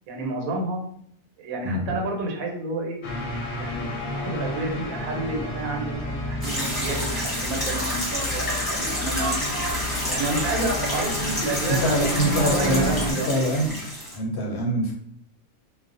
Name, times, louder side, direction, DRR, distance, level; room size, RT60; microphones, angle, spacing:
voice 1, 0.1-0.8 1.4-3.0 3.5-9.4 10.1-13.3, right 2 dB, 85° right, 1 dB, 1.1 m, -30 dB
sound 1, 3.0-13.1, equal, 90° left, 1.0 m, -31 dB
sound 2, 5.9-11.0, left 2 dB, 60° right, 0.7 m, -34 dB
sound 3, 6.4-14.2, equal, 20° left, 0.8 m, -29 dB
voice 2, 11.7-13.7 14.1-14.9, equal, 65° left, 0 dB, 0.7 m, -24 dB
2.4 x 2.1 x 2.4 m, 0.67 s
omnidirectional pair, 1.4 m